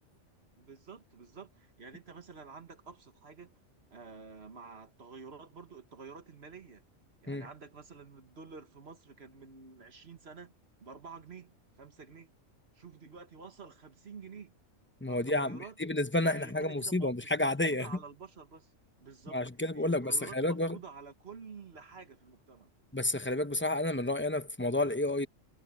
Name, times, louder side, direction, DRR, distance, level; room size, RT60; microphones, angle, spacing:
voice 1, 0.6-3.5 3.9-6.8 7.2-10.5 10.8-12.3 12.7-14.5 15.1-15.7 16.2-18.7 19.0-19.4 19.7-22.7, right 5 dB, 50° right, 1.7 m, -49 dB
voice 2, 15.0-17.9 19.3-20.8 22.9-25.3, left 1 dB, 10° left, 0.6 m, -30 dB
omnidirectional pair, 1.4 m